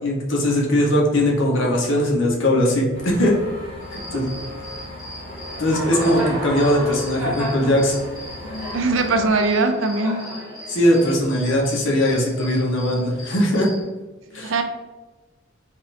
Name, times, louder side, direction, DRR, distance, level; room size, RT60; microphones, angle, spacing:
voice 1, 0.0-3.3 3.9-4.3 5.6-8.0 10.7-13.7 14.3-14.5, left 1 dB, 65° left, -2 dB, 0.9 m, -20 dB
sound 1, 2.9-9.3, left 1 dB, 30° left, 1.1 m, -38 dB
Cricket, 3.8-13.8, equal, 5° right, 1.3 m, -33 dB
voice 2, 8.7-10.3 14.3-14.6, right 3 dB, 65° right, 7 dB, 0.4 m, -21 dB
3.6 x 2.5 x 3.3 m, 1.2 s
head